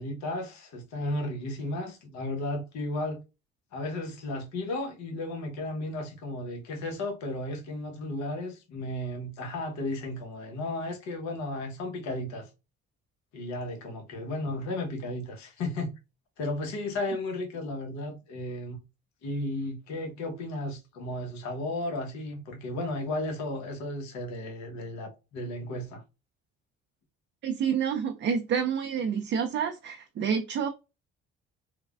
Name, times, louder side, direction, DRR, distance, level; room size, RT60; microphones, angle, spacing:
voice 1, 0.0-3.2 3.7-12.5 13.3-15.9 16.4-18.8 19.2-26.0, left 1 dB, 70° left, 1.0 m, -34 dB
voice 2, 27.4-30.7, right 7 dB, 40° right, 0.5 m, -28 dB
3.2 x 2.2 x 2.3 m
supercardioid pair, 65°, 29 cm